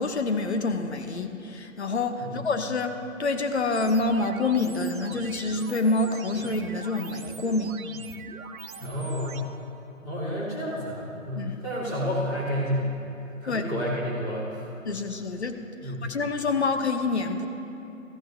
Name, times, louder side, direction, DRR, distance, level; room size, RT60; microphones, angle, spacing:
voice 1, 0.0-7.8 11.3-11.6 13.5-13.6 14.9-17.5, left 3 dB, 55° left, 6 dB, 0.9 m, -27 dB
sound 1, 3.7-9.4, right 6 dB, 85° right, 0.8 m, -42 dB
voice 2, 8.8-9.5 10.0-12.9 13.4-14.7 15.8-16.1, equal, 10° left, -8 dB, 1.7 m, -30 dB
15.0 x 14.0 x 2.7 m, 2.9 s
figure-of-eight pair, 160°, 41 cm